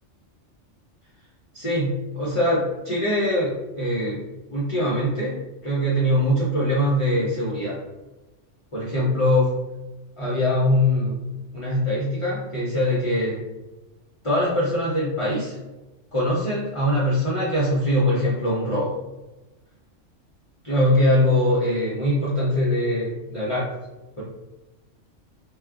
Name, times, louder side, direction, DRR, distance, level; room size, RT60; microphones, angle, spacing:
voice 1, 1.5-5.4 5.6-7.8 8.7-9.5 10.2-11.2 11.5-13.4 14.2-15.6 16.1-18.9 20.6-23.7, left 1 dB, 40° left, -7 dB, 0.4 m, -22 dB
2.3 x 2.1 x 3.5 m, 1.1 s
omnidirectional pair, 1.3 m